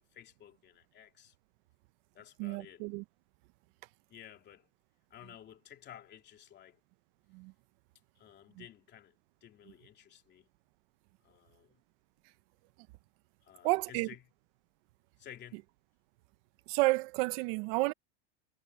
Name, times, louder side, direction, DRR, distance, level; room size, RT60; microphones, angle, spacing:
voice 1, 0.0-1.3 2.1-2.9 4.1-4.7 5.1-6.8 8.1-9.1 9.4-10.5 11.2-11.8 13.4-14.2 15.2-15.6, left 10 dB, 30° left, 3.1 m, -54 dB
voice 2, 2.4-3.0 7.3-7.5 13.6-14.1 16.7-17.9, right 23 dB, 55° right, 0.8 m, -31 dB
supercardioid pair, 140°, 34 cm